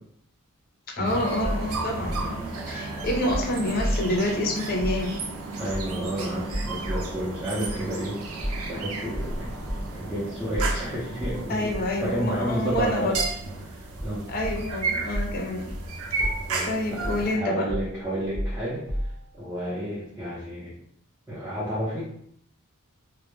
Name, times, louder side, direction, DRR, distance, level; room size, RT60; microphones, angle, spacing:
voice 1, 1.0-5.2 11.5-13.2 14.3-15.7 16.1-16.3 16.6-17.7, left 1 dB, 45° left, -1 dB, 0.5 m, -28 dB
sound 1, 1.0-17.4, right 3 dB, 80° right, 0.4 m, -34 dB
sound 2, 1.4-4.2 4.7-5.0 5.7-6.1 6.5-7.1 7.6-7.8 8.4-8.7 9.1-9.9 10.5-10.9 11.2-11.4 11.7-11.9 12.7-13.4 14.0-14.7 15.1-15.4 15.7-15.9 16.2-16.6 17.0-17.3 17.7-19.4, equal, 45° right, 0.8 m, -31 dB
voice 2, 5.6-8.3 8.7-9.5 9.9-13.1 13.6-14.3 16.5-18.8 19.3-20.7 21.3-22.0, equal, 10° right, -10 dB, 0.6 m, -31 dB
2.2 x 2.1 x 3.0 m, 0.69 s
head